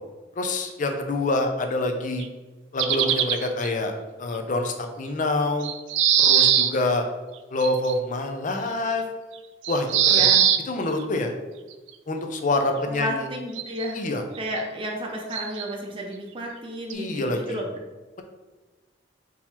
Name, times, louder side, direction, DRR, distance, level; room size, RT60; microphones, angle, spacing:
voice 1, 0.4-2.2 2.7-3.9 4.2-5.7 6.2-7.0 7.5-9.0 9.7-10.3 10.7-11.3 12.1-13.3 13.9-14.2 16.9-17.6, left 2 dB, 45° left, 5 dB, 0.5 m, -26 dB
sound 1, 2.2-2.3 2.8-3.7 5.6-6.7 7.6-7.9 9.6-10.6 11.9-12.0 13.6-13.9 14.4-14.5 15.3-15.7 16.9-17.0, right 9 dB, 85° right, 0.3 m, -20 dB
voice 2, 10.1-10.4 12.8-14.0 14.4-17.6, equal, 30° right, 0 dB, 0.7 m, -32 dB
3.8 x 2.9 x 4.2 m, 1.3 s
head